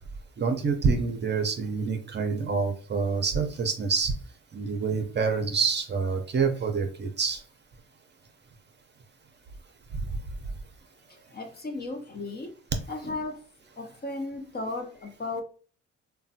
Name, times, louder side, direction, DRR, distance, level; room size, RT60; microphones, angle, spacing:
voice 1, 0.4-4.1 4.5-7.4 9.9-10.2, right 5 dB, 35° right, 0.6 m, -27 dB
voice 2, 11.3-12.5 12.9-13.4 13.8-15.4, left 2 dB, 30° left, 0.6 m, -35 dB
3.2 x 2.2 x 2.6 m
cardioid pair, 90°, 30 cm